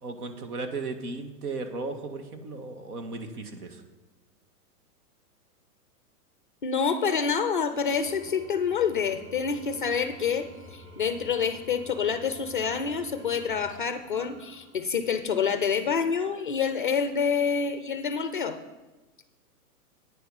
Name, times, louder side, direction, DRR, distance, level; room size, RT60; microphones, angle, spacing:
voice 1, 0.0-3.8, right 3 dB, 70° right, 7 dB, 1.8 m, -36 dB
voice 2, 6.6-18.6, left 6 dB, 35° left, 10 dB, 0.4 m, -27 dB
Engine / Tools, 7.7-15.2, left 1 dB, 10° right, 3.8 m, -50 dB
9.6 x 9.1 x 5.6 m, 1.1 s
hypercardioid pair, 160°, 47 cm